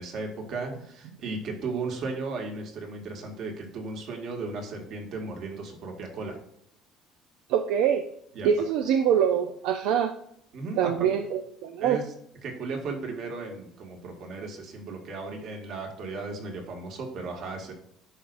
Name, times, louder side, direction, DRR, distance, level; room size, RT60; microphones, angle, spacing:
voice 1, 0.0-6.4 8.3-8.5 10.5-11.1 11.8-12.1 12.4-17.7, right 3 dB, 50° right, 2 dB, 1.9 m, -35 dB
voice 2, 7.5-8.0 8.4-10.1 10.8-12.0, right 8 dB, 75° right, 7 dB, 0.6 m, -24 dB
11.0 x 4.9 x 2.6 m, 0.72 s
cardioid pair, 160°, 0 cm